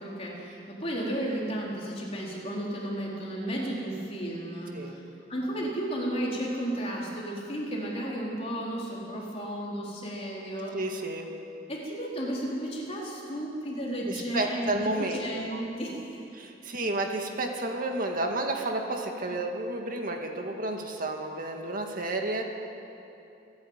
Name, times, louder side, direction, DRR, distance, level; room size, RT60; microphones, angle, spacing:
voice 1, 0.0-5.0 5.3-10.8 11.7-16.1 19.2-19.3, right 1 dB, 35° left, -4 dB, 4.1 m, -33 dB
voice 2, 10.7-11.3 14.1-15.2 15.5-15.6 16.3-22.4, right 2 dB, 50° right, 2 dB, 2.0 m, -31 dB
27.5 x 10.5 x 9.0 m, 2.8 s
head